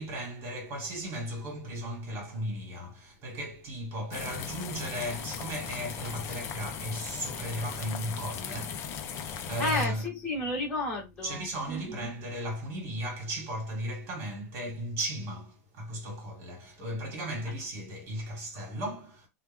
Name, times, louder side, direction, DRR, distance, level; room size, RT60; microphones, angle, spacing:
voice 1, 0.0-10.1 11.2-19.3, equal, 30° right, 1.5 m, -36 dB
sound 1, 4.1-9.9, left 7 dB, 30° left, 0.5 m, -38 dB
voice 2, 9.6-12.0, left 1 dB, 10° left, 1.5 m, -32 dB
3.1 x 2.2 x 3.4 m
supercardioid pair, 155°, 9 cm